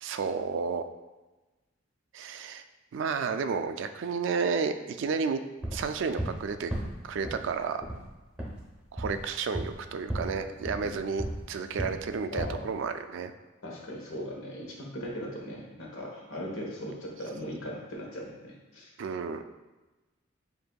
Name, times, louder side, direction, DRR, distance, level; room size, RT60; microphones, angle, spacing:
voice 1, 0.0-0.9 2.1-2.6 2.9-5.4 5.7-6.7 7.0-7.8 8.9-13.3 19.0-19.4, right 5 dB, 65° right, 9 dB, 0.3 m, -31 dB
sound 1, 5.6-6.4 6.7-7.5 7.8-8.1 8.4-8.6 9.0-9.2 9.5-9.8 10.1-10.4 10.6-11.4 11.8-12.1 12.3-12.7, right 1 dB, 5° right, 0.9 m, -35 dB
voice 2, 12.3-12.7 13.6-18.9, equal, 85° left, -2 dB, 1.1 m, -39 dB
7.7 x 2.6 x 2.3 m, 1.1 s
head